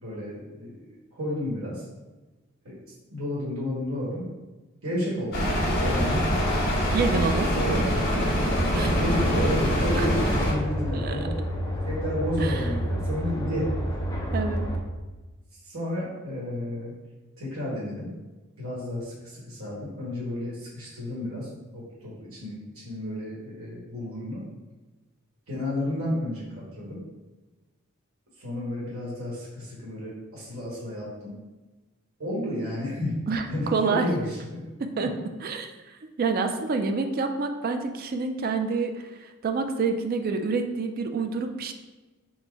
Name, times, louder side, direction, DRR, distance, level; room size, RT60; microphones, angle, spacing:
voice 1, 0.0-1.8 2.6-2.8 3.1-4.3 4.8-5.4 5.8-6.2 7.5-7.8 8.9-11.3 11.9-13.7 15.6-17.0 17.4-18.1 18.6-24.4 25.5-27.0 28.4-31.3 32.2-33.2 33.5-34.6 35.0-35.1, left 1 dB, 70° right, -6 dB, 1.3 m, -32 dB
sound 1, 5.3-10.5, equal, 50° left, 1.4 m, -24 dB
voice 2, 6.9-7.5 8.7-9.0 10.0-10.1 10.9-11.2 12.4-12.6 14.3-14.7 33.3-34.1 34.8-35.7 36.2-38.9 39.2-41.7, right 4 dB, 45° right, 6 dB, 0.3 m, -27 dB
sound 2, 8.5-14.8, equal, 15° left, 0.5 m, -30 dB
4.2 x 2.1 x 4.5 m, 1.2 s
head